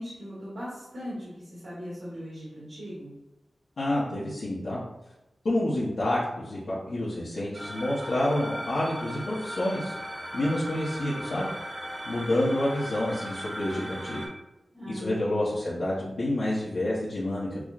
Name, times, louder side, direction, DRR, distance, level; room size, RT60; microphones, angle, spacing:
voice 1, 0.0-3.1 14.7-15.4, equal, 75° right, -10 dB, 1.3 m, -39 dB
voice 2, 3.8-4.8 5.4-9.9 10.3-11.5 12.1-14.2 14.9-17.6, left 1 dB, 70° left, -9 dB, 0.8 m, -28 dB
sound 1, 7.5-14.3, equal, 30° right, 0.8 m, -38 dB
6.1 x 2.0 x 2.4 m, 0.96 s
wide cardioid pair, 100°, 0 cm